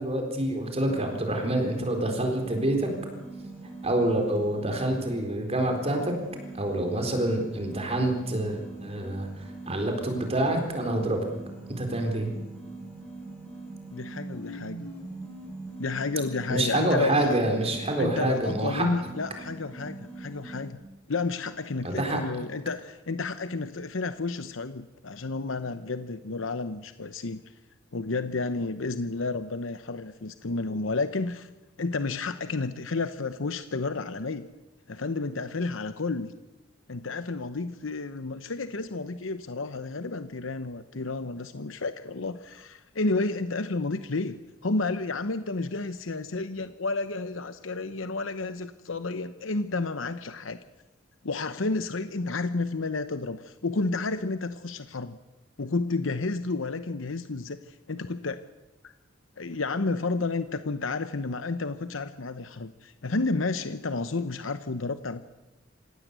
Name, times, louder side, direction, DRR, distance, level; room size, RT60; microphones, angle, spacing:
voice 1, 0.0-2.9 3.8-6.1 6.6-11.2 11.7-12.3 16.5-18.9 21.8-22.2, right 1 dB, 30° right, 4 dB, 4.1 m, -27 dB
sound 1, 0.8-20.7, right 2 dB, 10° left, 7.5 m, -42 dB
voice 2, 13.9-14.8 15.8-17.4 18.0-20.8 21.1-27.4 27.9-31.5 31.8-34.5 34.9-36.3 36.9-44.4 44.6-50.6 51.2-55.2 55.6-58.4 58.8-58.9 59.4-65.2, left 3 dB, 90° left, 11 dB, 0.9 m, -31 dB
26.5 x 16.5 x 8.2 m, 1.1 s
head